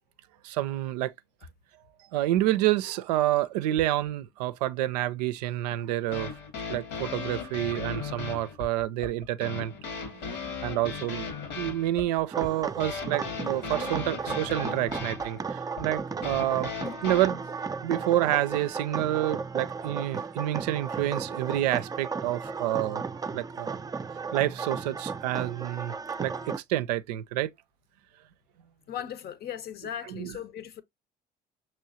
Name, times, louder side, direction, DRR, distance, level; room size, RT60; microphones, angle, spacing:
voice 1, 0.4-1.1 2.1-6.4 6.7-9.8 10.1-10.2 10.6-11.3 11.6-16.7 17.0-17.4 17.8-23.0 23.3-23.8 24.3-25.9 26.2-27.5 30.1-30.3, right 14 dB, 75° right, 0.4 m, -28 dB
sound 1, 5.7-17.3, left 5 dB, 75° left, 1.8 m, -37 dB
sound 2, 12.3-26.6, right 5 dB, 20° right, 0.5 m, -35 dB
voice 2, 28.9-30.8, left 9 dB, 50° left, 0.8 m, -37 dB
6.2 x 3.1 x 2.7 m
hypercardioid pair, 60°, 21 cm